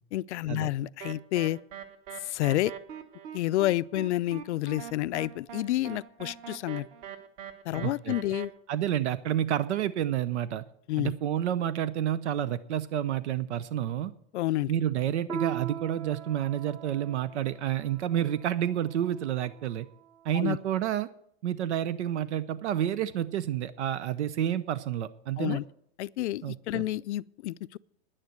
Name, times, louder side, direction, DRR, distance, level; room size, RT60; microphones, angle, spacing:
voice 1, 0.1-1.6 2.3-2.7 3.3-6.9 7.7-8.5 10.9-11.1 14.3-14.7 20.3-20.6 25.4-25.6 26.0-27.8, left 15 dB, 85° left, 0.5 m, -29 dB
sound 1, 1.0-8.5, right 9 dB, 40° right, 1.4 m, -42 dB
voice 2, 7.8-8.2 8.7-10.6 11.0-14.1 14.7-19.9 20.2-21.1 21.4-25.6 26.4-26.9, right 11 dB, 90° right, 0.8 m, -29 dB
Piano, 15.3-20.2, right 7 dB, 15° right, 0.7 m, -41 dB
10.5 x 9.9 x 7.9 m
supercardioid pair, 160°, 33 cm